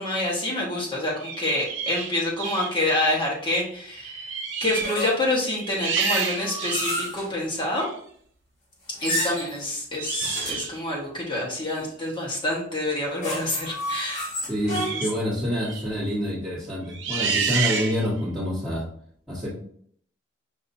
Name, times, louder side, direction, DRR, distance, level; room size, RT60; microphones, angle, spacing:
voice 1, 0.0-4.3 4.6-7.8 9.0-14.3 14.7-15.1, left 1 dB, 25° left, -4 dB, 1.1 m, -27 dB
sound 1, 1.2-2.8 3.4-3.7 3.9-5.0 5.4-7.1 7.7-7.9 10.0-10.8 14.7-15.2 15.6-15.9 16.9-18.2, right 5 dB, 75° right, 0.6 m, -29 dB
sound 2, 4.8-5.4 6.0-7.3 8.9-9.6 10.2-10.7 12.9-15.2, left 1 dB, 70° left, 1.8 m, -31 dB
voice 2, 14.4-18.8 19.3-19.5, equal, 5° right, -15 dB, 1.4 m, -27 dB
5.4 x 2.7 x 2.6 m, 0.62 s
head